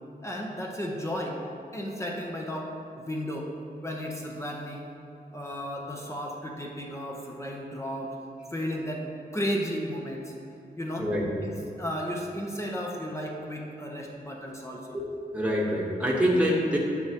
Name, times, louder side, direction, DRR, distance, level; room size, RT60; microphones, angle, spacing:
voice 1, 0.2-1.4 1.7-3.5 3.8-4.8 5.3-8.1 8.5-9.1 9.3-10.3 10.7-11.1 11.4-11.5 11.8-15.0, equal, 15° left, -1 dB, 0.7 m, -34 dB
voice 2, 14.9-16.8, equal, 10° right, -4 dB, 1.1 m, -26 dB
9.3 x 6.0 x 2.9 m, 2.7 s
wide cardioid pair, 145°, 16 cm